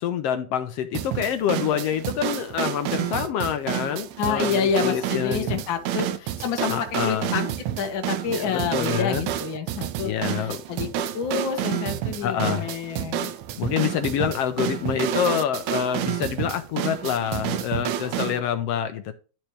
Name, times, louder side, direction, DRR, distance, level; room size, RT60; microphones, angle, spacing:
voice 1, 0.0-5.5 6.7-7.4 8.3-9.3 10.0-10.6 12.2-12.7 13.6-19.1, left 9 dB, 70° left, 9 dB, 1.5 m, -27 dB
sound 1, 0.9-18.4, right 11 dB, 85° right, 2.0 m, -29 dB
voice 2, 4.2-7.5 7.8-10.9 11.1-13.3, left 6 dB, 50° left, 4 dB, 1.7 m, -28 dB
11.5 x 4.5 x 3.1 m, 0.36 s
omnidirectional pair, 3.3 m